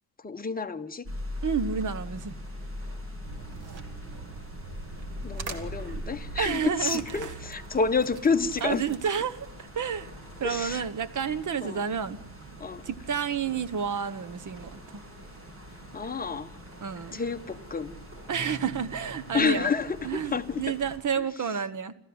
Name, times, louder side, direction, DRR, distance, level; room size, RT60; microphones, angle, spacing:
voice 1, 0.2-1.0 5.2-8.8 10.4-10.8 11.6-11.8 12.6-12.8 15.9-16.5 17.1-17.9 19.3-20.6, left 5 dB, 25° left, 7 dB, 1.1 m, -29 dB
sound 1, 1.0-21.0, equal, 35° right, 7.9 m, -42 dB
voice 2, 1.4-2.4 6.4-7.3 8.6-10.1 10.4-12.2 12.8-15.0 16.8-17.2 18.3-19.7 20.0-21.9, right 7 dB, 50° right, 13 dB, 1.2 m, -30 dB
sound 2, 3.2-9.6, right 3 dB, 80° right, 2.4 m, -42 dB
26.5 x 15.5 x 8.0 m, 0.81 s
wide cardioid pair, 135°, 38 cm